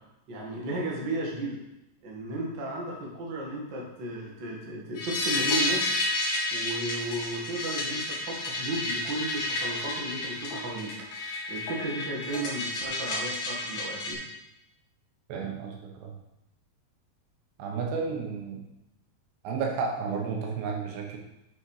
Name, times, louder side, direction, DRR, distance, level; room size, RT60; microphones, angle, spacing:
voice 1, 0.3-1.6 2.0-6.0 6.5-10.9 11.5-14.2, right 1 dB, 50° right, -3 dB, 1.4 m, -34 dB
sound 1, 5.0-14.1, left 2 dB, 60° left, 1.9 m, -31 dB
voice 2, 15.3-16.1 17.6-18.6 19.4-21.2, right 5 dB, 85° right, 0 dB, 3.4 m, -32 dB
8.0 x 6.3 x 4.9 m, 0.89 s
omnidirectional pair, 4.8 m